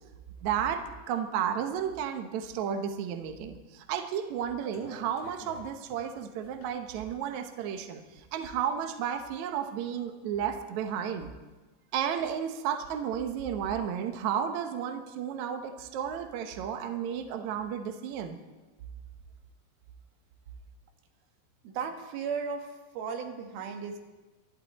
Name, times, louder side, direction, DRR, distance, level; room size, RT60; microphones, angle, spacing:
voice 1, 0.4-11.3 11.9-18.4, right 8 dB, 85° right, 7 dB, 1.6 m, -33 dB
sound 1, 4.6-8.6 9.0-10.0 10.4-11.4, left 2 dB, 85° left, 4.8 m, -52 dB
voice 2, 21.6-24.0, right 6 dB, 70° right, 4 dB, 3.1 m, -35 dB
25.5 x 11.5 x 4.2 m, 1.2 s
omnidirectional pair, 5.0 m